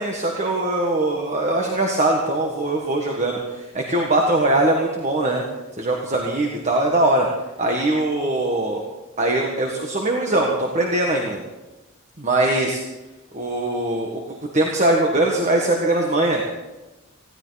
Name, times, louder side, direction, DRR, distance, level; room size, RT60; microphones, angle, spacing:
voice 1, 0.0-5.4 5.8-7.3 7.6-8.8 9.2-11.4 12.2-12.8 13.3-16.4, right 2 dB, 35° right, 0 dB, 1.6 m, -21 dB
20.0 x 16.0 x 4.1 m, 1.1 s
head